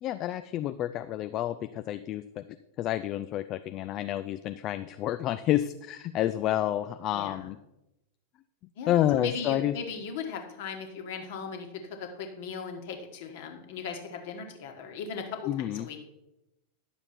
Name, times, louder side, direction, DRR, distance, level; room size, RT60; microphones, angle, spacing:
voice 1, 0.0-2.4 2.8-7.6 8.9-9.7 15.5-15.9, left 12 dB, 35° left, 11 dB, 0.4 m, -29 dB
voice 2, 7.1-7.5 8.8-11.7 12.0-15.2 15.6-16.0, left 5 dB, 50° left, 4 dB, 1.6 m, -38 dB
11.0 x 6.9 x 4.3 m, 0.91 s
figure-of-eight pair, 90°, 0 cm